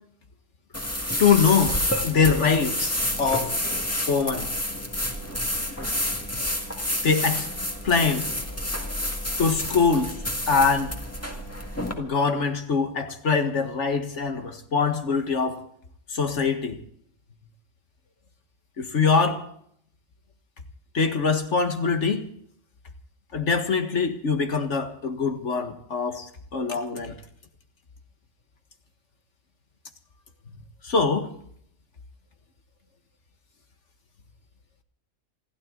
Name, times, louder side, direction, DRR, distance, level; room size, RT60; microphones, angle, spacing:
sound 1, 0.7-11.9, left 1 dB, 10° left, 1.9 m, -29 dB
voice 1, 1.2-1.8 2.0-3.6 4.1-4.5 7.0-7.5 7.8-8.3 9.4-10.2 10.5-10.9 12.0-15.6 16.1-16.8 18.8-19.4 20.9-22.3 23.3-27.2 30.8-31.3, left 5 dB, 65° left, 2.0 m, -23 dB
28.0 x 12.5 x 3.9 m
omnidirectional pair, 1.3 m